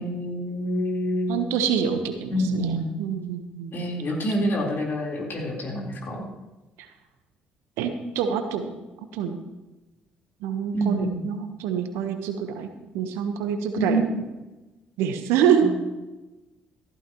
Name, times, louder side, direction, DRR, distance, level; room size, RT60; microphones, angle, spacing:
voice 1, 0.0-1.4 2.3-3.1 3.7-6.2 10.7-11.2 13.8-14.2 15.6-15.7, right 1 dB, 50° left, -1 dB, 4.3 m, -27 dB
voice 2, 1.3-3.7 7.8-8.7 9.1-9.4 10.4-14.2 15.0-15.7, right 7 dB, 80° right, 7 dB, 1.3 m, -26 dB
14.5 x 12.5 x 3.1 m, 1.1 s
hypercardioid pair, 55°, 4 cm